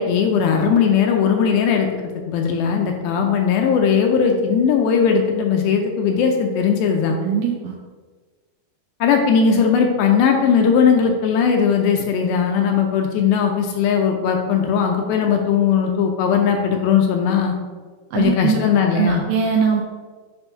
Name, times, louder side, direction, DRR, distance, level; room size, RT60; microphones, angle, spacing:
voice 1, 0.0-7.2 9.0-17.6 18.1-19.2, left 6 dB, 80° left, 3 dB, 2.2 m, -18 dB
voice 2, 7.2-7.8 18.1-18.6 18.9-19.8, right 7 dB, 85° right, 1 dB, 2.1 m, -20 dB
6.9 x 2.6 x 5.4 m, 1.4 s
omnidirectional pair, 4.6 m